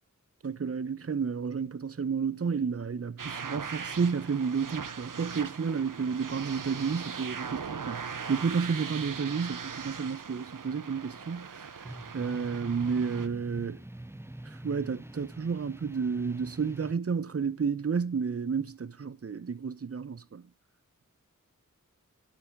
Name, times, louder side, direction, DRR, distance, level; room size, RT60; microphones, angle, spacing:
voice 1, 0.4-11.7 12.1-13.8 14.4-20.5, right 5 dB, 45° right, 0.7 m, -31 dB
sound 1, 3.2-13.3, right 6 dB, 75° right, 0.9 m, -40 dB
sound 2, 11.8-16.9, right 1 dB, 10° right, 0.6 m, -44 dB
11.0 x 7.4 x 3.6 m
wide cardioid pair, 45°, 32 cm